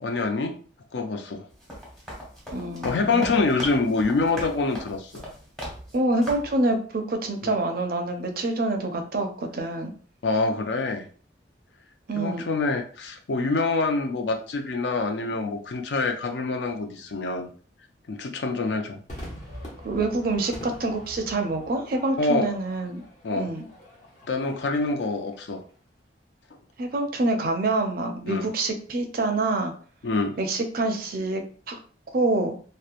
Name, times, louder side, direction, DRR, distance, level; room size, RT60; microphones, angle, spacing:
voice 1, 0.0-0.6 0.9-1.5 2.8-5.1 7.4-7.5 10.2-11.1 12.1-17.5 18.1-19.0 22.2-22.5 23.2-23.5 24.3-25.6 28.3-28.5 30.0-30.4, left 3 dB, 65° left, 4 dB, 0.4 m, -26 dB
sound 1, 1.5-6.0 6.2-6.6, equal, ahead, 0.8 m, -39 dB
voice 2, 2.5-3.3 5.9-9.9 12.1-12.4 19.8-23.0 23.4-23.6 26.8-29.7 30.4-31.8 32.1-32.5, right 2 dB, 50° right, 5 dB, 0.4 m, -26 dB
Crowd / Fireworks, 19.1-25.6, left 1 dB, 40° left, 0.8 m, -44 dB
2.9 x 2.1 x 2.4 m, 0.42 s
head